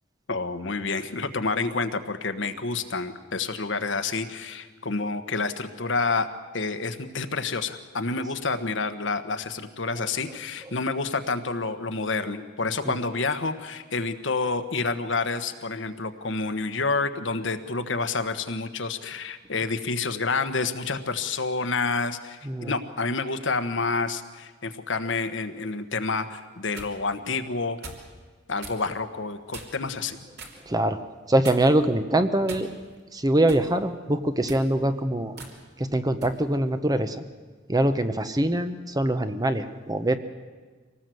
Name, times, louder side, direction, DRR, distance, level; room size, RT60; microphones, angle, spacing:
voice 1, 0.3-6.3 6.5-27.8 28.5-30.2, left 4 dB, 70° left, 8 dB, 1.3 m, -28 dB
sound 1, 26.4-26.9 27.8-28.1 28.6-28.8 29.5-29.9 30.4-30.6 31.4-31.8 32.5-33.0 33.5-33.7 34.4-34.7 35.4-35.5 36.2-36.4, right 3 dB, 60° right, 3.1 m, -41 dB
voice 2, 30.7-31.0 31.3-32.7 33.1-35.3 35.8-37.2 37.7-40.2, right 1 dB, 20° right, 10 dB, 0.9 m, -23 dB
24.5 x 18.5 x 7.8 m, 1.4 s
head